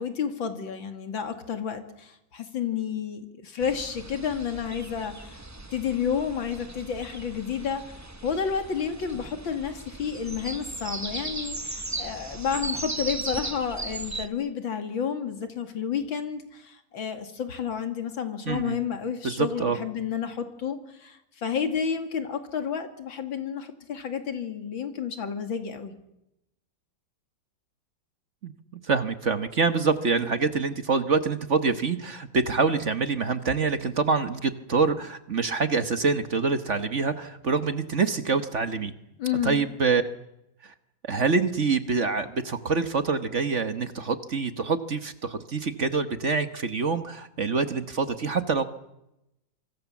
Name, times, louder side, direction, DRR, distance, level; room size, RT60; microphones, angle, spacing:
voice 1, 0.0-5.4 5.7-25.9 39.2-39.6, left 7 dB, 85° left, 7 dB, 3.2 m, -31 dB
sound 1, 3.6-14.3, right 2 dB, 15° right, 0.5 m, -37 dB
voice 2, 18.4-18.8 19.2-19.8 28.4-38.9 39.4-40.0 40.6-40.7 41.0-48.6, right 4 dB, 40° right, 10 dB, 1.4 m, -26 dB
27.0 x 25.0 x 7.3 m, 0.85 s
omnidirectional pair, 2.1 m